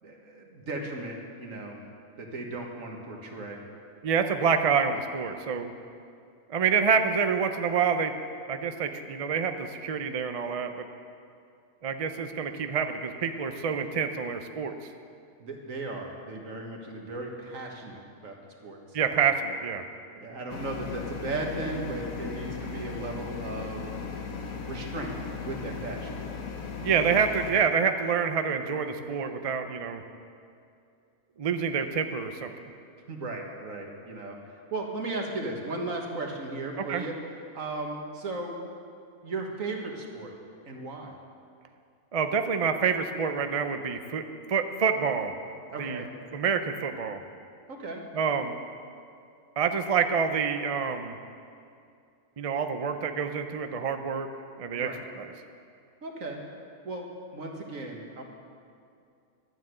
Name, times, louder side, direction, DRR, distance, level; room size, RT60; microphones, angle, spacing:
voice 1, 0.0-1.8 2.2-3.6 15.4-18.4 18.6-19.2 20.1-23.8 24.7-25.2 25.4-26.2 33.1-37.2 37.5-38.6 39.2-40.3 40.6-41.1 45.7-46.1 47.7-48.0 54.8-55.0 56.0-56.4 56.8-58.2, right 2 dB, 65° right, 1 dB, 1.9 m, -36 dB
voice 2, 4.0-5.7 6.5-8.1 8.5-10.9 11.8-14.7 18.9-19.8 26.8-30.0 31.4-32.7 36.9-37.0 42.1-44.2 44.5-45.3 45.8-46.0 46.3-47.2 48.1-48.6 49.6-51.1 52.4-54.3 54.6-54.9 55.2-55.3, right 6 dB, 45° right, 7 dB, 0.4 m, -27 dB
sound 1, 20.5-27.5, left 5 dB, 70° left, 1.3 m, -37 dB
12.0 x 9.2 x 7.8 m, 2.5 s
omnidirectional pair, 1.5 m